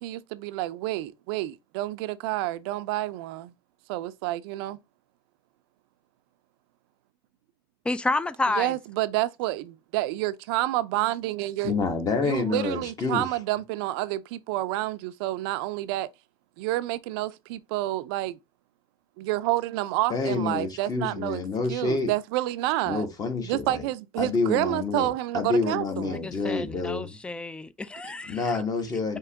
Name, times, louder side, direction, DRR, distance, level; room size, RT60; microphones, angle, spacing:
voice 1, 0.0-3.5 3.9-4.8 8.5-11.7 12.2-16.1 16.6-18.4 19.2-21.4 21.7-23.1 23.4-26.2, right 16 dB, 75° right, 0.4 m, -29 dB
voice 2, 7.8-8.7 26.1-28.6, left 2 dB, 10° left, 0.3 m, -30 dB
voice 3, 11.6-13.3 20.1-22.1 22.9-23.8 24.2-27.2 28.3-29.2, left 4 dB, 30° left, 1.3 m, -28 dB
4.6 x 3.0 x 3.4 m
supercardioid pair, 125°, 13 cm